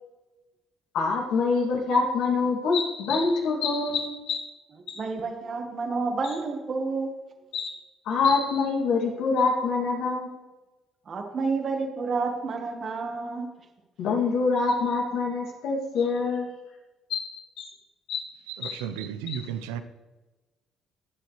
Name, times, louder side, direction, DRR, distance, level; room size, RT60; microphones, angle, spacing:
voice 1, 0.9-4.4 4.9-5.0 6.2-6.3 7.5-7.7 8.0-10.3 14.0-16.5 17.1-17.7 18.1-18.2 18.6-18.8 19.3-19.5, left 4 dB, 75° left, 2.5 m, -25 dB
voice 2, 5.0-7.1 11.1-13.5, right 4 dB, 50° right, 1.4 m, -29 dB
voice 3, 18.8-19.8, right 9 dB, 90° right, 0.8 m, -33 dB
18.0 x 7.8 x 3.2 m
supercardioid pair, 65°, 0 cm